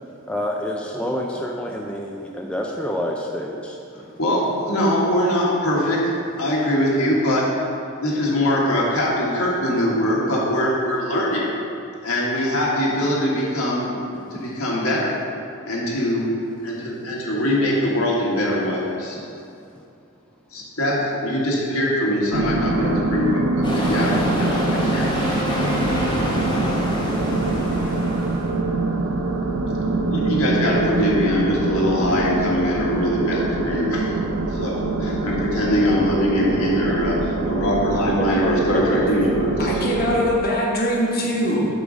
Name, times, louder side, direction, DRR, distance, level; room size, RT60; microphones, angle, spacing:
voice 1, 0.3-3.8 37.0-37.5 38.1-39.1, equal, 5° left, -1 dB, 0.4 m, -28 dB
voice 2, 4.2-6.0 6.4-7.4 8.0-11.5 12.0-13.9 14.3-15.2 15.7-16.3 16.6-19.2 20.5-25.7 30.1-34.2 34.5-39.8, equal, 75° left, -5 dB, 1.7 m, -22 dB
sound 1, 22.3-40.4, right 2 dB, 70° right, 0.5 m, -24 dB
Wind instrument woodwind instrument, 23.4-27.8, left 1 dB, 35° right, 0.9 m, -34 dB
sound 2, 23.6-28.6, equal, 20° left, 1.2 m, -27 dB
voice 3, 39.6-41.7, equal, 45° left, -3 dB, 1.2 m, -22 dB
7.9 x 3.9 x 6.2 m, 2.6 s
head